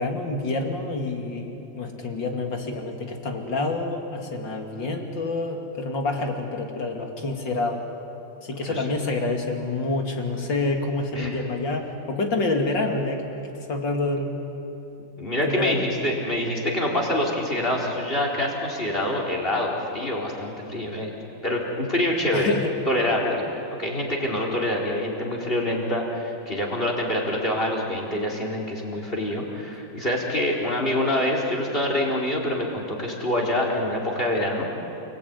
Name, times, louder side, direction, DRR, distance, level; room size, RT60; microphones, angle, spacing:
voice 1, 0.0-7.8 8.4-14.3 15.4-15.8 22.3-22.7, left 2 dB, 60° left, 2 dB, 3.3 m, -27 dB
voice 2, 15.2-21.1 21.4-22.5 22.9-23.4 23.8-34.7, left 1 dB, 25° left, -1 dB, 4.6 m, -26 dB
29.5 x 19.5 x 9.6 m, 2.9 s
omnidirectional pair, 2.2 m